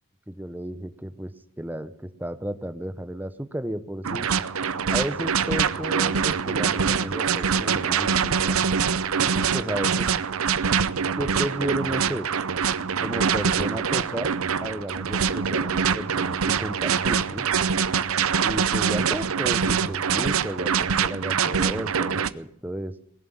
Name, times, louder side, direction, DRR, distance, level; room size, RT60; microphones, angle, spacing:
voice 1, 0.3-1.3 1.6-4.3 4.9-8.6 9.3-10.1 11.2-12.3 13.0-14.3 14.6-17.4 18.4-23.0, right 1 dB, 10° right, 11 dB, 0.7 m, -33 dB
sound 1, 4.0-22.3, right 6 dB, 75° right, 0.7 m, -24 dB
20.0 x 7.5 x 8.9 m, 0.75 s
head